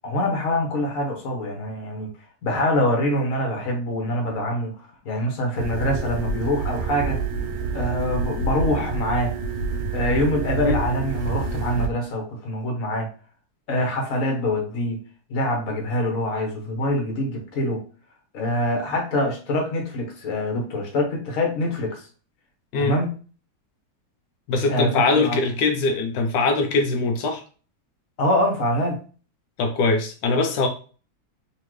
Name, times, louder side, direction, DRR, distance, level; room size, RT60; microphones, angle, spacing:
voice 1, 0.0-2.1 2.4-7.2 7.7-9.4 9.9-13.1 13.7-15.0 15.3-17.8 18.3-22.0 22.8-23.1 24.7-25.4 28.2-29.0, left 1 dB, 50° left, 1 dB, 1.5 m, -25 dB
sound 1, 5.6-11.9, right 4 dB, 65° right, 1.1 m, -27 dB
voice 2, 24.5-27.4 29.6-30.7, left 3 dB, 90° left, 4 dB, 1.4 m, -22 dB
3.8 x 3.3 x 3.1 m, 0.37 s
omnidirectional pair, 1.9 m